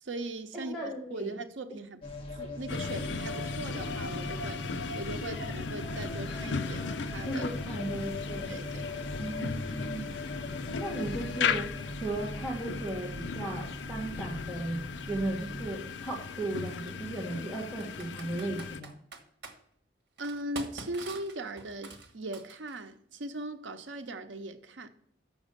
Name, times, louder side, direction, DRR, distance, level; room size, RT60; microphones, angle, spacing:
voice 1, 0.0-2.0 2.3-7.5 8.5-8.9 20.2-24.9, right 1 dB, 85° right, 0.8 m, -39 dB
voice 2, 0.5-1.3 7.2-8.5 9.2-10.1 10.7-14.8 15.1-18.9, right 2 dB, ahead, 1.5 m, -36 dB
sound 1, 2.0-15.7, left 1 dB, 30° left, 1.5 m, -40 dB
sound 2, 2.7-18.8, left 5 dB, 65° left, 0.5 m, -37 dB
Computer keyboard, 15.0-15.1 16.7-16.9 17.8-19.6 20.2-22.9, right 3 dB, 65° right, 1.3 m, -45 dB
7.2 x 6.1 x 6.7 m
head